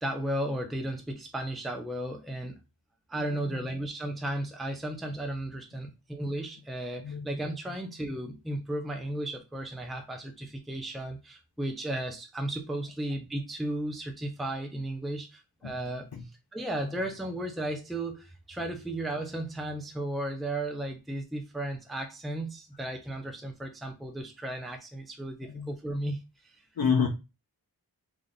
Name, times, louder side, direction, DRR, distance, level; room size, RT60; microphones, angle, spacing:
voice 1, 0.0-2.6 3.1-16.1 16.5-26.6, right 1 dB, ahead, 0.6 m, -35 dB
voice 2, 3.1-3.6 7.0-7.4 15.6-16.2 16.8-16.9 25.4-25.7 26.8-27.1, left 6 dB, 70° left, 0.8 m, -31 dB
3.3 x 2.5 x 3.7 m
wide cardioid pair, 70°, 38 cm